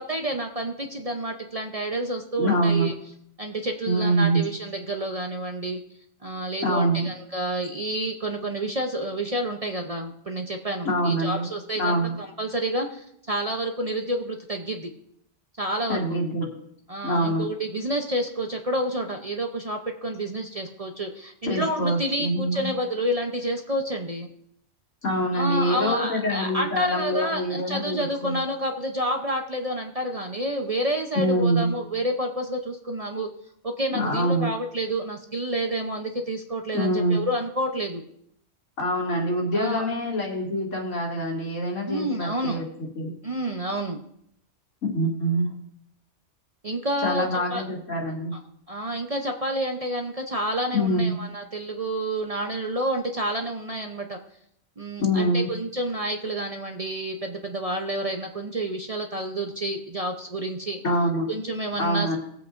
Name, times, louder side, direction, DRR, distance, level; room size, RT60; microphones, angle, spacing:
voice 1, 0.0-2.9 3.4-5.8 6.2-14.9 15.6-16.0 16.9-24.3 25.3-33.3 33.6-38.0 39.5-39.9 41.9-42.6 43.2-44.0 46.6-47.6 48.7-54.2 54.8-60.8 61.3-62.2, right 1 dB, 35° right, 3 dB, 0.7 m, -29 dB
voice 2, 2.4-2.9 3.9-4.4 6.6-7.1 10.8-11.5 11.8-12.1 15.9-16.5 17.0-17.5 21.4-22.7 25.0-28.4 31.1-31.7 33.9-34.5 36.7-37.2 38.8-42.7 43.0-43.1 44.8-45.5 47.0-48.3 50.7-51.2 55.0-55.5 60.8-61.3 61.8-62.2, right 1 dB, 80° left, -2 dB, 2.8 m, -25 dB
20.0 x 8.0 x 2.5 m, 0.72 s
omnidirectional pair, 1.3 m